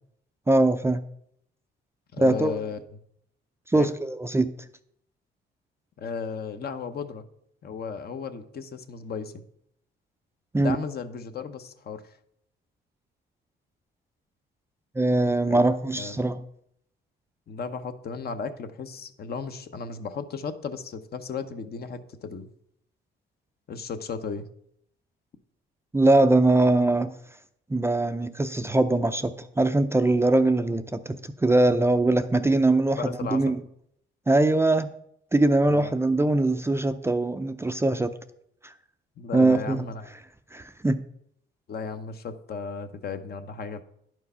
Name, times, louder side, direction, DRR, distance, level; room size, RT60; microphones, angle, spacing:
voice 1, 0.5-1.0 2.2-2.6 3.7-4.5 10.5-10.8 15.0-16.4 25.9-27.1 27.7-33.6 34.3-34.9 35.3-38.1 38.6-38.7 39.3-39.8 40.5-41.0, right 2 dB, 15° right, 10 dB, 0.5 m, -22 dB
voice 2, 2.1-2.8 3.7-3.9 6.0-7.2 7.6-9.3 10.6-12.2 15.5-16.2 17.5-22.5 23.7-24.5 33.0-33.4 35.7-35.9 39.2-40.1 41.7-43.8, left 5 dB, 50° left, 9 dB, 0.9 m, -35 dB
10.5 x 4.7 x 5.5 m, 0.71 s
cardioid pair, 90°, 20 cm